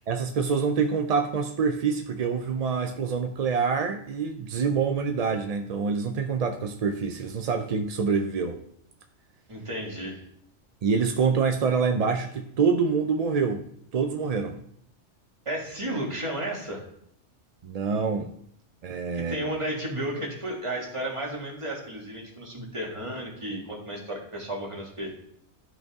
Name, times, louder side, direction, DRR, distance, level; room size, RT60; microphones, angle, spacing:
voice 1, 0.1-8.6 10.8-13.7 13.9-14.6 17.6-18.3 18.8-19.4, right 5 dB, 55° right, 6 dB, 0.4 m, -26 dB
voice 2, 9.5-10.2 15.5-16.8 19.1-25.1, right 1 dB, 25° right, -2 dB, 1.8 m, -33 dB
11.5 x 5.4 x 3.6 m, 0.69 s
omnidirectional pair, 1.2 m